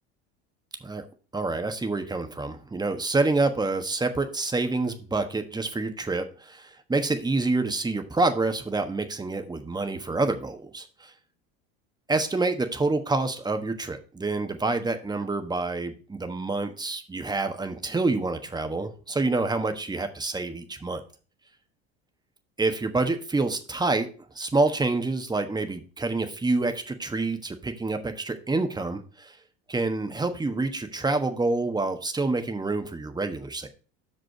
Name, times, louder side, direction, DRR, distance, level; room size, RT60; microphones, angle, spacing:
voice 1, 1.3-11.1 12.1-21.0 22.6-24.1 24.3-29.4 29.7-33.7, right 3 dB, 10° right, 7 dB, 1.2 m, -27 dB
6.1 x 5.4 x 5.8 m, 0.37 s
hypercardioid pair, 95°, 34 cm